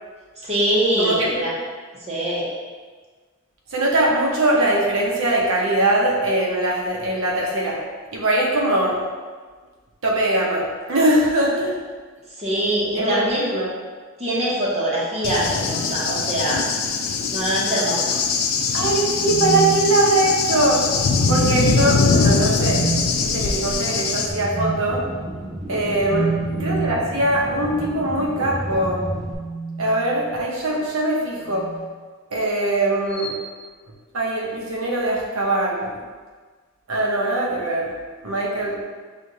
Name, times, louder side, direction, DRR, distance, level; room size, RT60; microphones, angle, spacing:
voice 1, 0.4-1.6 2.0-2.5 12.4-13.5 14.2-16.6 17.3-18.1 26.0-26.1, right 1 dB, 30° right, -6 dB, 0.9 m, -23 dB
voice 2, 1.0-1.5 3.7-7.8 8.1-9.0 10.0-11.8 12.9-13.7 18.7-20.8 21.3-25.0 25.7-26.3 26.6-29.1 29.8-31.7 32.3-33.3 34.1-35.9 36.9-37.9 38.2-38.8, right 1 dB, 75° right, -2 dB, 0.9 m, -21 dB
Cricket / Thunder, 15.2-24.3, left 5 dB, 85° left, 0.4 m, -22 dB
sound 1, 19.1-20.4 21.0-21.8 22.6-23.1 24.5-24.8 26.0-27.0 28.5-30.3 31.4-31.9 33.1-33.4, right 4 dB, 60° left, 0.8 m, -29 dB
sound 2, 24.3-29.3, right 1 dB, ahead, 0.5 m, -32 dB
6.3 x 2.4 x 2.8 m, 1.5 s
head